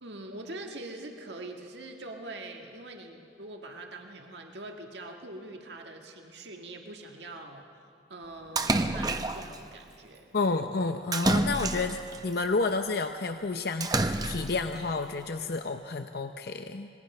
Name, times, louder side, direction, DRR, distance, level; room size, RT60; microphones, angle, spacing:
voice 1, 0.0-7.7 8.1-10.3, right 2 dB, 80° right, 3 dB, 1.7 m, -43 dB
Splash splatter, 8.6-9.6 11.1-12.2 13.8-14.6, right 2 dB, 20° right, 0.8 m, -28 dB
voice 2, 10.3-16.9, left 3 dB, 60° left, 7 dB, 0.7 m, -30 dB
26.0 x 21.0 x 5.5 m, 2.5 s
head